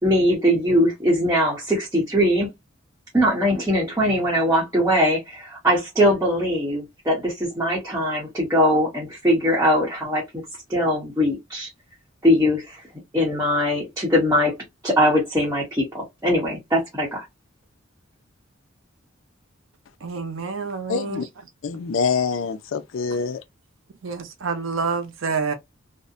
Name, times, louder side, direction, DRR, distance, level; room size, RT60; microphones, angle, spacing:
voice 1, 0.0-2.5 3.1-10.2 10.7-11.7 12.2-12.8 13.1-14.5 14.8-17.2, equal, 15° right, 0.8 m, -21 dB
voice 2, 20.0-21.2 24.0-25.5, right 5 dB, 75° right, 0.5 m, -27 dB
voice 3, 20.9-21.2 21.6-23.4, left 5 dB, 65° left, 0.4 m, -25 dB
2.6 x 2.0 x 2.4 m
head